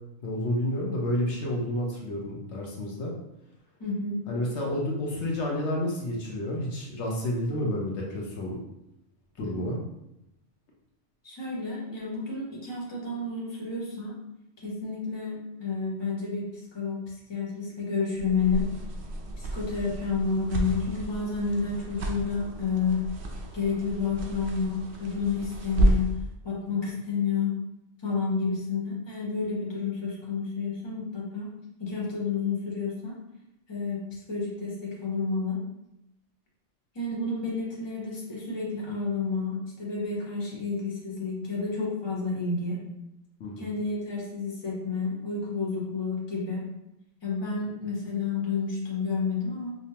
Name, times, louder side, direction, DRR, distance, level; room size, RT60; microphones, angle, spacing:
voice 1, 0.2-3.1 4.3-8.6 9.4-9.8 43.4-43.7, left 1 dB, 70° left, -2 dB, 1.0 m, -30 dB
voice 2, 3.8-4.2 11.2-14.1 14.6-18.6 19.4-23.1 23.5-26.1 26.4-27.5 28.0-31.5 31.8-33.1 33.7-35.6 36.9-42.8 43.6-46.6 47.2-49.7, left 4 dB, 25° left, -5 dB, 0.9 m, -30 dB
sound 1, 18.2-26.2, right 1 dB, 70° right, 0.9 m, -31 dB
5.0 x 2.1 x 2.8 m, 0.86 s
omnidirectional pair, 1.2 m